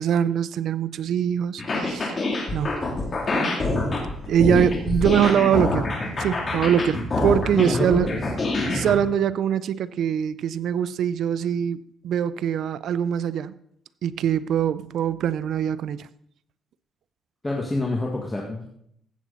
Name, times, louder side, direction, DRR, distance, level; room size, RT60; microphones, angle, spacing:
voice 1, 0.0-2.2 2.5-2.7 4.3-5.9 6.2-8.1 8.7-11.8 12.0-13.5 14.0-16.1, right 9 dB, 70° right, 0.5 m, -23 dB
sound 1, 1.6-8.9, left 2 dB, 40° left, 3.0 m, -26 dB
sound 2, 3.0-8.9, equal, 40° right, 5.2 m, -42 dB
voice 2, 7.5-8.2 17.4-18.7, left 2 dB, 20° left, 1.8 m, -26 dB
15.5 x 7.4 x 4.1 m
cardioid pair, 90°, 0 cm